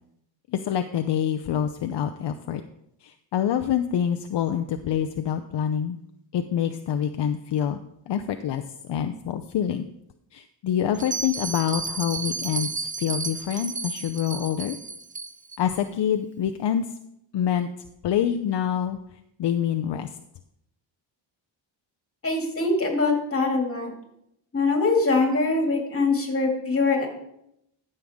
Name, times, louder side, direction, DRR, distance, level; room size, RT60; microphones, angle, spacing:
voice 1, 0.5-2.6 3.0-6.0 6.3-7.8 8.1-9.8 10.3-14.8 15.6-17.0 17.3-17.7 18.0-19.0 19.4-20.1, left 9 dB, 65° left, 7 dB, 0.6 m, -26 dB
Bell, 10.9-15.6, right 4 dB, 15° right, 0.5 m, -32 dB
voice 2, 22.2-23.9 24.5-27.1, left 3 dB, 30° left, 2 dB, 2.3 m, -23 dB
13.0 x 6.7 x 3.6 m, 0.79 s
cardioid pair, 105°, 46 cm